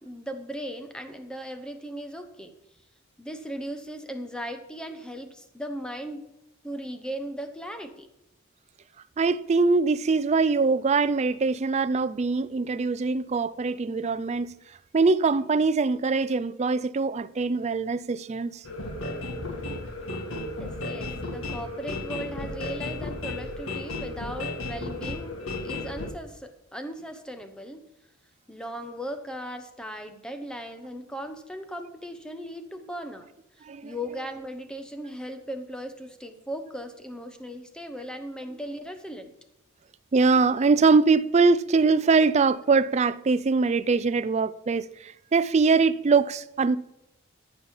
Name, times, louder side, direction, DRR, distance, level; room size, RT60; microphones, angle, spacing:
voice 1, 0.0-2.6 3.2-6.2 6.6-8.1 20.6-27.8 28.5-33.3 33.6-39.3, equal, 5° left, 0.9 m, -37 dB
voice 2, 9.2-14.5 14.9-18.6 33.7-33.9 40.1-46.8, right 4 dB, 30° right, 0.4 m, -23 dB
sound 1, 18.6-26.1, left 2 dB, 70° left, 1.8 m, -34 dB
14.0 x 5.5 x 7.0 m
head